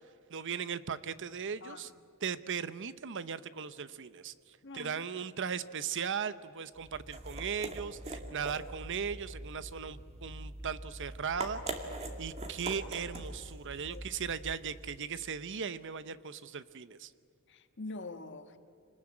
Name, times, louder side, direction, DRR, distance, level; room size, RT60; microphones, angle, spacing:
voice 1, 0.3-1.9 2.2-4.3 4.7-11.6 12.2-17.1, right 7 dB, 60° right, 15 dB, 0.8 m, -38 dB
voice 2, 4.6-5.1 13.9-14.1 17.5-18.6, left 3 dB, 55° left, 8 dB, 1.5 m, -45 dB
sound 1, 6.8-15.0, right 2 dB, 30° right, 2.3 m, -43 dB
27.0 x 20.0 x 8.8 m, 2.5 s
head